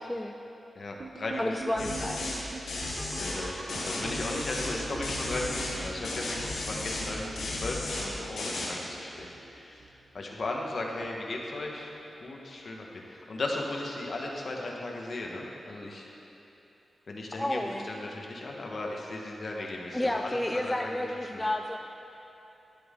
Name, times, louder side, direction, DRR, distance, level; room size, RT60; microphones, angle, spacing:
voice 1, 0.7-1.5 1.8-1.9 3.1-9.9 10.1-11.9 12.2-16.2 17.1-17.6 17.9-21.4, left 2 dB, 50° left, -1 dB, 1.4 m, -36 dB
sound 1, 1.0-10.1 10.4-10.7 11.0-11.1 11.6-11.7 12.2-12.3, right 3 dB, 50° right, 1.0 m, -44 dB
voice 2, 1.4-2.2 17.3-17.9 19.9-21.8, left 1 dB, 10° left, 4 dB, 0.4 m, -31 dB
sound 2, 1.8-2.4 2.7-3.4 3.7-4.8 5.0-5.8 6.0-7.1 7.4-8.1 8.4-8.7, left 2 dB, 90° left, 2.5 m, -34 dB
12.0 x 10.5 x 3.8 m, 3.0 s
wide cardioid pair, 115°, 0 cm